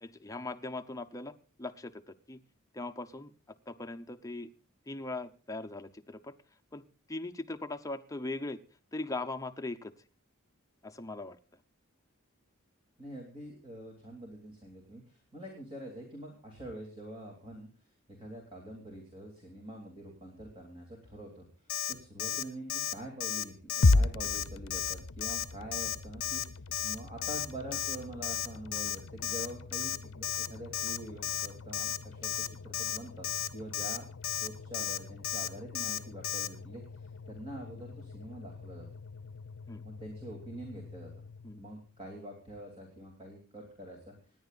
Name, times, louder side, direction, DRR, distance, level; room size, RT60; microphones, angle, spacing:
voice 1, 0.0-2.4 2.7-3.3 3.7-4.5 4.9-6.4 6.7-8.6 8.9-9.9 10.8-11.4 39.7-39.8 41.4-41.6, left 2 dB, 15° left, 7 dB, 0.7 m, -40 dB
voice 2, 13.0-17.7 18.2-21.4 21.9-26.4 26.8-33.3 33.5-34.1 34.4-38.9 39.8-41.1 41.6-44.1, right 1 dB, 25° right, 0 dB, 2.9 m, -45 dB
Alarm, 21.7-21.9 22.2-22.4 22.7-22.9 23.2-23.4 23.7-23.9 24.2-24.4 24.7-24.9 25.2-25.4 25.7-26.0 26.2-26.4 26.7-26.9 27.2-27.5 27.7-28.0 28.2-28.5 28.7-29.0 29.2-29.5 29.7-30.0 30.2-30.5 30.7-31.0 31.2-31.5 31.7-32.0 32.2-32.5 32.7-33.0 33.2-33.5 33.7-34.0 34.2-34.5 34.7-35.0 35.2-35.5 35.7-36.0 36.2-36.5, left 11 dB, 45° left, 1.3 m, -33 dB
sound 1, 23.8-42.0, left 3 dB, 65° left, 0.6 m, -36 dB
26.5 x 10.5 x 2.5 m, 0.37 s
head